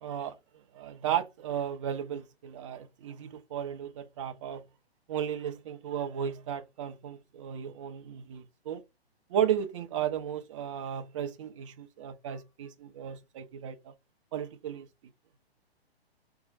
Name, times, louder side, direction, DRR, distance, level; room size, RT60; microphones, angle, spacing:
voice 1, 0.0-0.4 0.7-4.6 5.1-8.8 9.3-13.9 14.3-14.9, right 9 dB, 30° right, 0.6 m, -34 dB
4.3 x 2.3 x 3.9 m
figure-of-eight pair, 125°, 32 cm